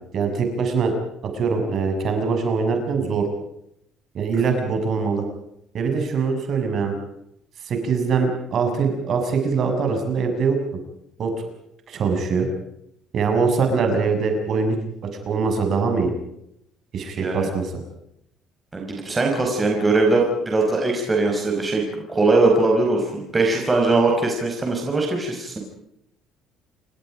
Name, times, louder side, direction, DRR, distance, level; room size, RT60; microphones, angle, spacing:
voice 1, 0.1-0.9 1.2-3.3 4.1-5.2 5.7-6.9 7.6-10.6 11.2-11.5 11.9-12.5 13.1-14.8 15.0-16.1 16.9-17.7, right 5 dB, 40° right, 5 dB, 6.5 m, -22 dB
voice 2, 17.2-17.5 18.7-25.6, right 3 dB, 15° right, 1 dB, 5.0 m, -21 dB
28.5 x 25.0 x 5.1 m, 0.76 s
cardioid pair, 170°, 0 cm